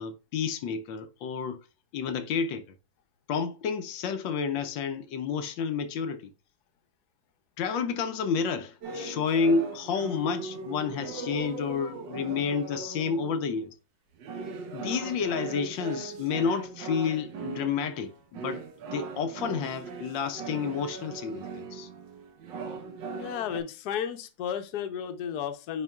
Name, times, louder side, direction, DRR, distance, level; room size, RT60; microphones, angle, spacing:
voice 1, 0.0-1.6 1.9-2.6 3.3-6.3 7.6-13.7 14.7-18.6 18.9-21.9, left 5 dB, 90° left, 1.5 m, -30 dB
sound 1, 8.8-13.6 14.2-23.6, right 4 dB, 80° right, 1.7 m, -39 dB
voice 2, 23.2-25.8, left 8 dB, 65° left, 1.2 m, -33 dB
9.7 x 4.4 x 2.3 m
omnidirectional pair, 2.0 m